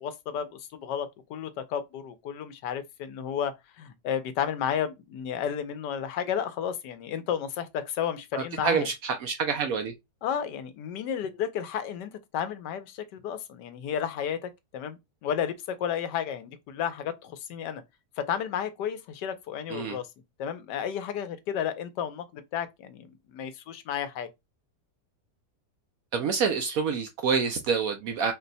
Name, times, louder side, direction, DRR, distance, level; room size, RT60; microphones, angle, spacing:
voice 1, 0.0-8.9 10.2-17.8 18.2-20.1 20.4-24.3, left 8 dB, 85° left, 1.3 m, -32 dB
voice 2, 8.3-9.9 19.7-20.0 26.1-28.3, right 5 dB, 70° right, 0.9 m, -27 dB
4.3 x 2.1 x 4.0 m
omnidirectional pair, 1.8 m